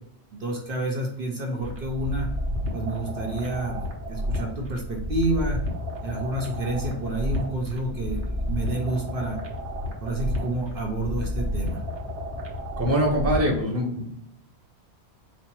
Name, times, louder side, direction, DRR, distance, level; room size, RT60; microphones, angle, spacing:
voice 1, 0.4-2.3 2.7-3.8 4.1-5.6 6.0-9.4 10.0-11.8, right 2 dB, 55° right, -1 dB, 0.9 m, -29 dB
sound 1, 1.6-13.6, left 1 dB, 75° right, 1.1 m, -31 dB
voice 2, 12.8-14.3, equal, 15° right, -2 dB, 0.9 m, -24 dB
4.2 x 2.3 x 4.4 m, 0.77 s
omnidirectional pair, 1.1 m